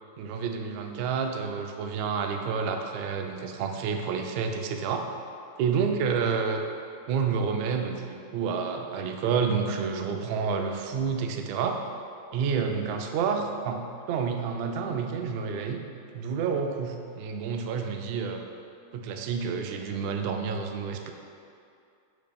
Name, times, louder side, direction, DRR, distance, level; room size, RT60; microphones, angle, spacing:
voice 1, 0.2-5.1 5.6-6.6 7.1-11.8 12.3-15.8 16.1-18.4 18.9-21.1, right 6 dB, 45° right, 4 dB, 0.3 m, -29 dB
3.4 x 2.8 x 3.5 m, 2.4 s
figure-of-eight pair, 90°, 0 cm